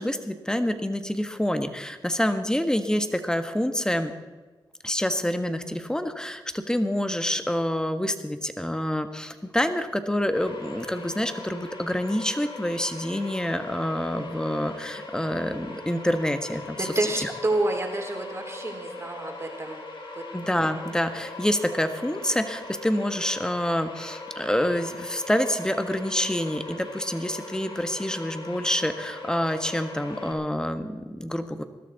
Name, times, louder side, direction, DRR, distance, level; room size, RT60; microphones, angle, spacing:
voice 1, 0.0-4.1 4.8-16.9 17.2-17.3 20.3-31.6, left 1 dB, 10° left, 8 dB, 1.4 m, -27 dB
sound 1, 10.3-30.3, left 2 dB, 65° left, 2.5 m, -40 dB
voice 2, 16.8-19.8 20.2-20.3, right 2 dB, 30° right, 2 dB, 3.5 m, -28 dB
20.5 x 12.5 x 4.1 m, 1.2 s
cardioid pair, 60°, 9 cm